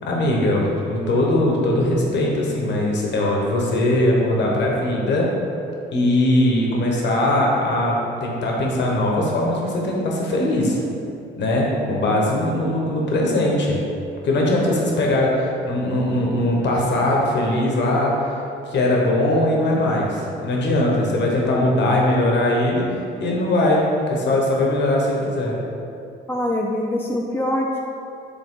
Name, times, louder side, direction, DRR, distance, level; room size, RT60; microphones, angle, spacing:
voice 1, 0.0-5.3 5.9-10.8 11.4-13.8 14.2-25.5, left 1 dB, 60° left, -2 dB, 1.3 m, -20 dB
voice 2, 26.3-27.8, left 1 dB, 10° left, -1 dB, 0.4 m, -24 dB
8.3 x 3.4 x 3.8 m, 2.7 s
cardioid pair, 90°, 20 cm